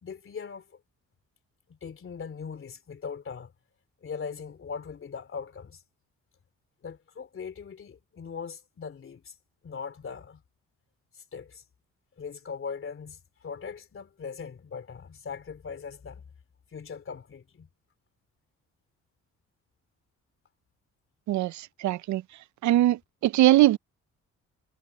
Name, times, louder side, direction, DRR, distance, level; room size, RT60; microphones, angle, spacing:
voice 1, 0.0-0.6 1.7-3.5 4.0-5.8 6.8-9.3 9.6-10.4 11.1-11.6 12.2-16.2 16.7-17.7, left 6 dB, 45° left, 3.2 m, -40 dB
voice 2, 21.3-22.2 22.6-23.8, right 15 dB, 70° right, 0.6 m, -22 dB
cardioid pair, 90°, 30 cm